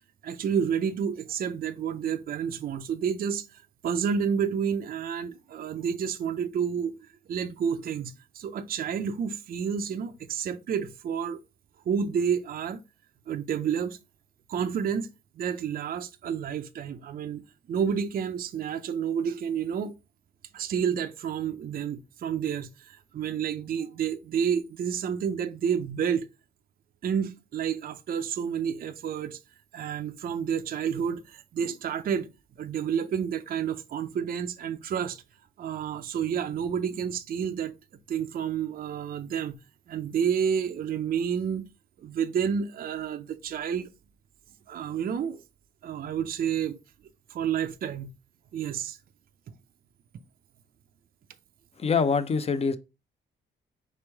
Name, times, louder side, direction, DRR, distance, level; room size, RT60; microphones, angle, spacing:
voice 1, 0.2-11.4 11.9-12.8 13.3-14.0 14.5-15.1 15.4-17.4 17.7-19.9 20.5-26.3 27.0-29.4 29.7-32.3 32.6-35.2 35.6-37.8 38.1-39.6 39.9-41.6 42.0-43.9 44.7-45.4 45.8-46.8 47.3-48.1 48.5-49.0, right 7 dB, 50° right, 0.4 m, -30 dB
voice 2, 51.8-52.8, left 5 dB, 30° left, 0.5 m, -24 dB
4.5 x 3.1 x 3.4 m
cardioid pair, 100°, 20 cm